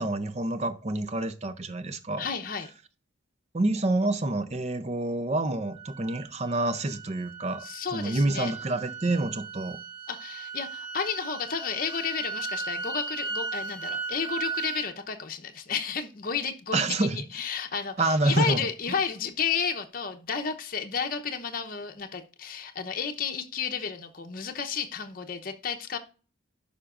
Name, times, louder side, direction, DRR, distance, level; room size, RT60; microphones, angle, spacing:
voice 1, 0.0-2.3 3.5-7.7 7.9-9.8 16.7-17.3 18.0-18.7, right 2 dB, 35° right, 0.6 m, -27 dB
voice 2, 2.2-2.7 7.6-8.5 10.1-26.0, left 6 dB, 50° left, 0.8 m, -32 dB
sound 1, 5.7-14.9, right 4 dB, 75° right, 1.7 m, -37 dB
11.5 x 5.2 x 2.5 m
head